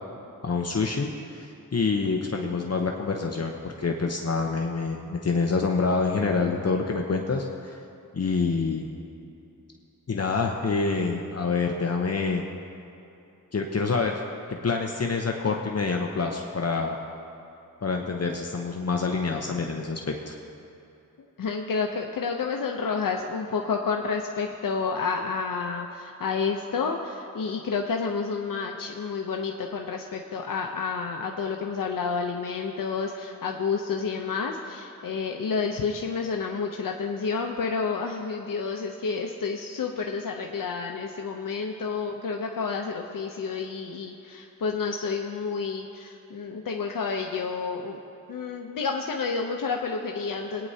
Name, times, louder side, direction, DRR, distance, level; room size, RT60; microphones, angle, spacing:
voice 1, 0.4-7.8 8.1-8.9 10.1-12.4 13.5-14.2 14.6-17.0 17.8-20.0 20.3-20.4, left 4 dB, 50° left, 1 dB, 0.8 m, -27 dB
voice 2, 21.2-48.0 48.3-50.7, left 5 dB, 85° left, 2 dB, 0.7 m, -30 dB
20.5 x 9.4 x 2.8 m, 2.7 s
wide cardioid pair, 65°, 33 cm